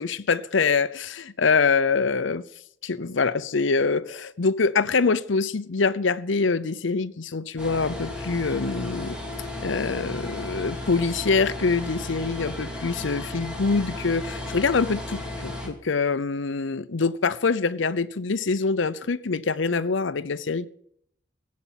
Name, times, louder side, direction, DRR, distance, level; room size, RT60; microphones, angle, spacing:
voice 1, 0.0-2.5 2.8-9.2 9.6-20.7, left 4 dB, 80° left, 0.7 m, -25 dB
sound 1, 7.6-15.7, left 1 dB, 5° right, 2.7 m, -34 dB
16.0 x 8.5 x 7.5 m
head